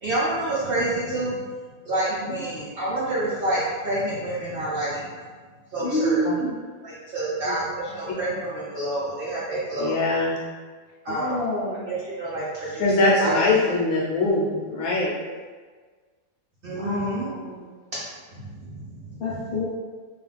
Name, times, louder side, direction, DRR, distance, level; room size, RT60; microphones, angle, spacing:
voice 1, 0.0-1.4 1.8-5.1 5.7-6.2 6.8-10.0 11.0-11.4 11.9-13.4 16.6-17.3 18.3-19.4, right 1 dB, 60° right, -7 dB, 0.6 m, -28 dB
voice 2, 5.8-6.6 11.1-11.8 16.7-17.7 19.2-19.6, equal, 50° left, -8 dB, 0.7 m, -28 dB
voice 3, 9.8-10.4 12.8-15.1, left 2 dB, 80° left, -4 dB, 1.0 m, -22 dB
2.4 x 2.4 x 3.2 m, 1.5 s
omnidirectional pair, 1.5 m